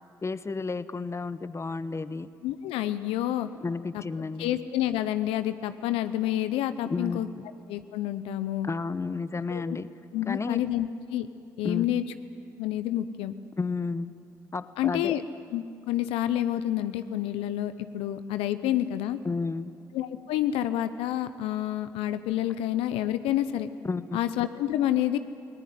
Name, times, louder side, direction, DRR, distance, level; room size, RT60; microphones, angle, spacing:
voice 1, 0.2-2.3 3.6-4.5 6.8-7.2 8.6-9.9 10.3-10.6 11.6-11.9 13.6-14.1 14.5-15.1 19.2-19.7 23.8-24.2, left 4 dB, 30° left, 15 dB, 0.9 m, -31 dB
voice 2, 2.4-3.5 3.9-4.0 4.4-7.3 7.7-8.7 9.5-9.8 10.1-11.3 11.6-12.0 12.6-13.4 14.8-15.2 15.5-19.2 19.9-23.7 24.1-25.2, left 12 dB, 75° left, 12 dB, 0.7 m, -28 dB
20.0 x 19.0 x 9.4 m, 2.4 s
hypercardioid pair, 45°, 10 cm